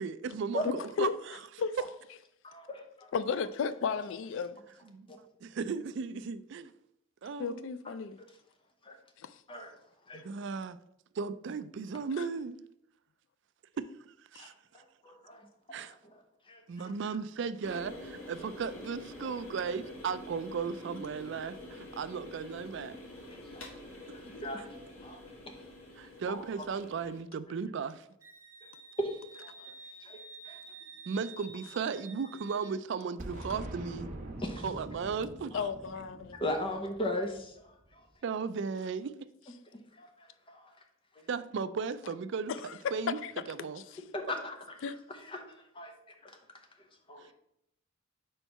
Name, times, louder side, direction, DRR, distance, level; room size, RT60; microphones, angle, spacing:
voice 1, 0.0-1.4 4.9-5.1 5.4-6.7 7.2-7.7 10.1-10.8 11.1-12.6 13.8-14.5 15.7-16.0 16.7-23.0 26.0-28.1 31.1-34.1 34.6-35.7 38.2-39.1 41.3-42.5 42.9-43.2 43.5-43.8 47.2-47.3, right 5 dB, 60° right, 0.3 m, -36 dB
voice 2, 2.4-3.1 5.1-5.2 8.2-8.4 8.8-9.0 9.5-9.8 10.1-10.2 14.3-16.9 19.2-19.3 23.3-23.7 24.1-25.6 26.3-26.6 29.0-29.7 30.0-30.6 34.4-34.7 35.5-35.6 36.3-38.1 39.9-40.8 41.1-41.3 44.1-45.9 46.2-47.3, left 1 dB, 25° left, 0.9 m, -40 dB
voice 3, 3.1-4.6 7.4-8.2 9.2-9.3 35.5-36.4 43.2-43.3 44.8-45.0, left 5 dB, 65° left, 0.3 m, -33 dB
sound 1, 17.6-27.2, left 1 dB, 90° left, 1.7 m, -47 dB
Wind instrument woodwind instrument, 28.2-32.8, right 3 dB, 15° right, 0.6 m, -50 dB
Boom, 33.2-37.9, right 1 dB, 40° right, 1.2 m, -44 dB
4.5 x 4.5 x 5.4 m
head